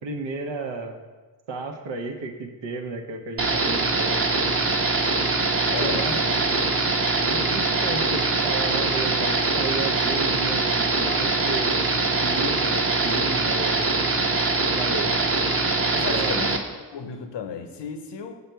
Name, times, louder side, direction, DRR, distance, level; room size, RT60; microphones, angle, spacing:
voice 1, 0.0-1.0 1.5-4.6 5.6-6.6 7.2-11.8 12.2-13.9 14.8-15.1 16.0-16.5, right 3 dB, 85° right, 4 dB, 0.9 m, -33 dB
sound 1, 3.4-16.6, right 3 dB, 30° right, 0.9 m, -23 dB
voice 2, 5.7-6.3 15.0-15.3 15.9-16.7 16.9-18.3, left 6 dB, 75° left, 7 dB, 0.9 m, -34 dB
7.0 x 5.0 x 4.5 m, 1.3 s
cardioid pair, 60°, 43 cm